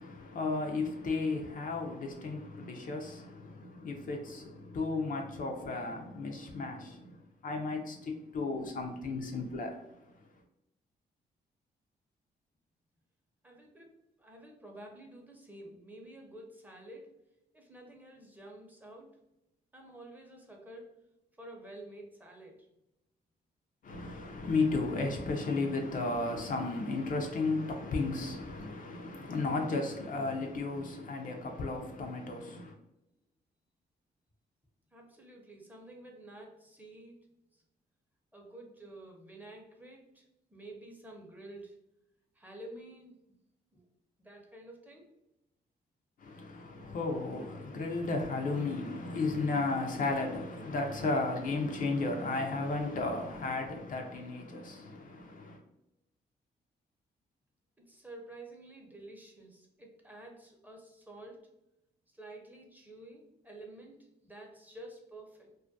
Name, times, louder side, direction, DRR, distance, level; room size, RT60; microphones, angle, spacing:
voice 1, 0.0-9.8 23.8-32.7 46.2-55.6, left 3 dB, 50° left, 0.4 m, -34 dB
voice 2, 13.4-17.1 17.5-19.2 19.7-20.9 21.4-22.7 34.9-37.1 37.5-37.6 38.3-41.8 42.4-43.2 43.7-43.9 44.2-45.1 57.9-61.5 62.1-65.5, right 1 dB, 10° right, 0.6 m, -50 dB
2.3 x 2.1 x 2.6 m
cardioid pair, 70°, 18 cm